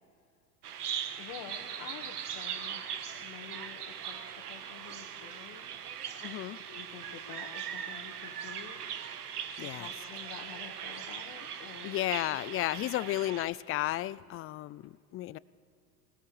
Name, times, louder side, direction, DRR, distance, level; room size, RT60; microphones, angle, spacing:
Bird vocalization bird call bird song, 0.6-13.4, right 8 dB, 75° right, 1.4 m, -40 dB
voice 1, 1.2-2.9 3.2-5.7 6.5-8.8 9.6-12.4 12.8-13.1, left 9 dB, 50° left, -1 dB, 1.9 m, -49 dB
voice 2, 6.2-6.6 9.6-9.9 11.8-15.4, left 15 dB, 30° left, 20 dB, 0.5 m, -33 dB
21.0 x 19.0 x 7.1 m, 2.4 s
hypercardioid pair, 85°, 46 cm